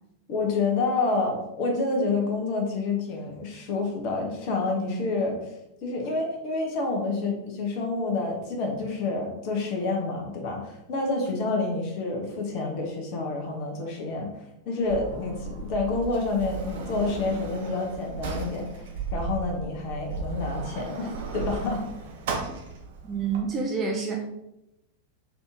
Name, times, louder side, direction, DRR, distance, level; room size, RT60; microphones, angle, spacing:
voice 1, 0.3-5.4 5.8-14.3 14.7-18.8 19.1-21.8, left 3 dB, 45° left, 1 dB, 1.0 m, -28 dB
Sliding door, 14.8-23.4, right 4 dB, 55° right, 0.8 m, -35 dB
voice 2, 23.0-24.2, right 5 dB, 25° right, 0 dB, 0.5 m, -28 dB
4.1 x 2.9 x 3.5 m, 0.89 s
figure-of-eight pair, 90°, 0 cm